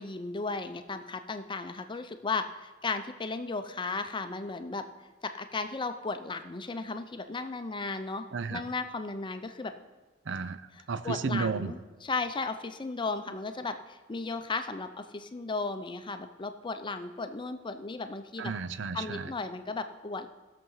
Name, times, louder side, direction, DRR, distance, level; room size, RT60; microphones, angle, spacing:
voice 1, 0.0-4.9 5.2-9.7 11.0-18.5 18.9-20.3, left 3 dB, 25° left, 8 dB, 0.6 m, -35 dB
voice 2, 8.3-8.6 10.3-11.7 18.4-19.3, right 5 dB, 65° right, 13 dB, 0.6 m, -33 dB
16.5 x 6.9 x 5.6 m, 1.2 s
head